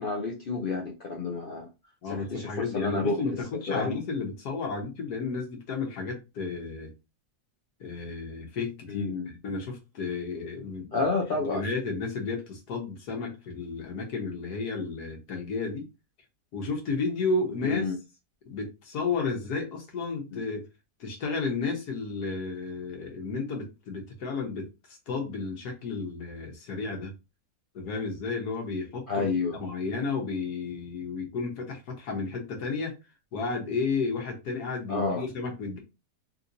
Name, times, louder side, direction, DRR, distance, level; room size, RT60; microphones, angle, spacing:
voice 1, 0.0-1.7 2.1-3.2 3.7-3.9 8.9-9.3 10.9-11.6 17.6-17.9 20.3-20.4 29.1-29.6 34.9-35.2, left 3 dB, 60° left, 0.5 m, -29 dB
voice 2, 2.0-6.9 7.8-11.0 11.3-15.8 16.5-17.8 18.5-20.7 21.0-24.7 25.1-27.1 27.7-33.0 33.3-35.8, left 4 dB, 80° left, 1.6 m, -32 dB
3.6 x 2.9 x 2.6 m
omnidirectional pair, 1.7 m